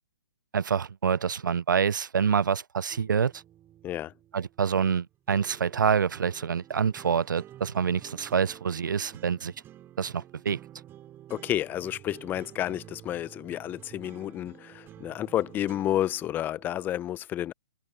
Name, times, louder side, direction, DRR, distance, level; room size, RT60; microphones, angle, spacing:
voice 1, 0.5-3.4 4.3-9.5 10.0-10.6, right 7 dB, 75° right, 0.7 m, -26 dB
sound 1, 2.9-16.9, right 12 dB, 20° right, 7.3 m, -50 dB
voice 2, 11.3-17.5, left 12 dB, 20° left, 0.7 m, -30 dB
hypercardioid pair, 135°, 10 cm